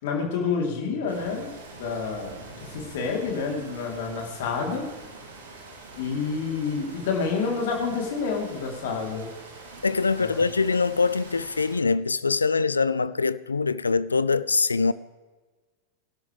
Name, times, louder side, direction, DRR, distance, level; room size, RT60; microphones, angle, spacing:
voice 1, 0.0-1.5 1.8-4.9 5.9-9.3 10.2-10.4, left 5 dB, 55° left, 3.7 m, -28 dB
sound 1, 1.1-11.8, right 2 dB, 65° right, 3.1 m, -45 dB
voice 2, 9.8-14.9, left 4 dB, 75° left, 0.4 m, -23 dB
24.5 x 12.0 x 3.5 m
figure-of-eight pair, 90°, 0 cm